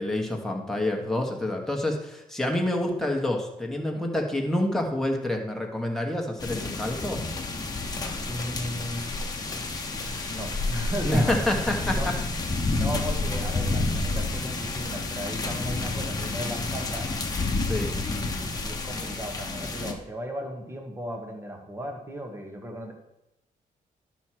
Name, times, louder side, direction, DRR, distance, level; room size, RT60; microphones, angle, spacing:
voice 1, 0.0-7.2 11.0-12.1 17.6-17.9, left 1 dB, 5° left, 0 dB, 1.5 m, -27 dB
sound 1, 6.4-19.9, left 2 dB, 25° left, 1.2 m, -30 dB
voice 2, 7.9-9.1 10.0-11.3 11.8-12.1 12.6-17.1 17.9-22.9, equal, 15° right, 3 dB, 1.5 m, -36 dB
12.0 x 6.3 x 4.4 m, 0.91 s
wide cardioid pair, 150°, 15 cm